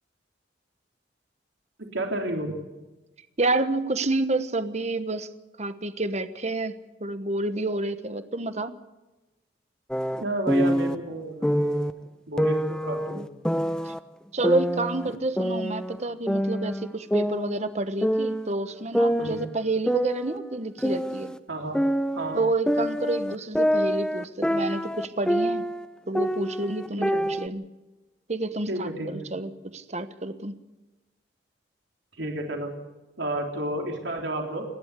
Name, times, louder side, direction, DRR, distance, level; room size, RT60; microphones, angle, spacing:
voice 1, 1.8-2.5 10.2-11.9 12.3-13.3 19.2-19.4 21.5-21.8 22.1-22.4 27.0-27.2 28.7-29.3 32.2-32.7 33.2-34.6, right 1 dB, 80° right, 2 dB, 3.6 m, -31 dB
voice 2, 3.4-5.3 5.6-6.7 7.0-8.8 13.8-13.9 14.3-21.3 22.3-25.6 26.1-27.6 28.3-30.6, right 2 dB, 40° right, 11 dB, 1.2 m, -29 dB
sound 1, 9.9-11.0 11.4-11.9 12.4-14.0 14.4-16.0 16.3-17.8 18.0-18.5 18.9-21.4 21.7-25.9 26.2-27.5, equal, 5° left, 0.6 m, -26 dB
29.0 x 11.5 x 8.3 m, 1.1 s
head